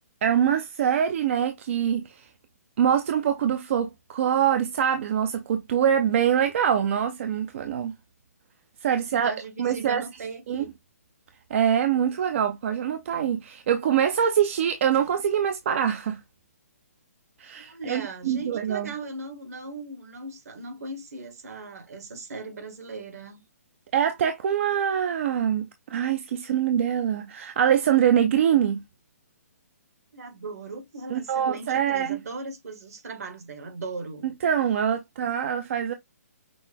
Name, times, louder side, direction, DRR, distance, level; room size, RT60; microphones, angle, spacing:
voice 1, 0.2-2.3 2.8-7.9 8.8-9.3 9.6-10.0 10.5-10.6 11.5-16.2 17.4-18.9 23.9-28.8 31.1-32.2 34.4-35.9, right 9 dB, 50° right, 0.6 m, -24 dB
voice 2, 8.9-10.7 17.6-23.4 30.1-34.3, right 3 dB, 70° right, 1.8 m, -38 dB
6.1 x 2.2 x 3.4 m
hypercardioid pair, 150°, 9 cm